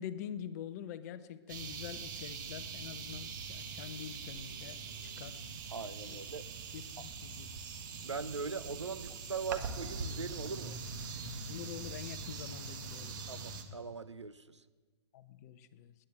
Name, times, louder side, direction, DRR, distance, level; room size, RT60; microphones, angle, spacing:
voice 1, 0.0-5.4 6.1-6.2 6.7-7.5 11.5-13.2 15.1-15.9, left 9 dB, 35° left, 13 dB, 0.8 m, -45 dB
sound 1, 1.5-13.6, right 5 dB, 45° right, 1.6 m, -43 dB
voice 2, 5.7-6.5 7.0-7.1 8.0-10.8 13.3-14.6, right 5 dB, 80° right, 12 dB, 0.8 m, -41 dB
19.0 x 10.0 x 7.6 m, 1.4 s
figure-of-eight pair, 115°, 15 cm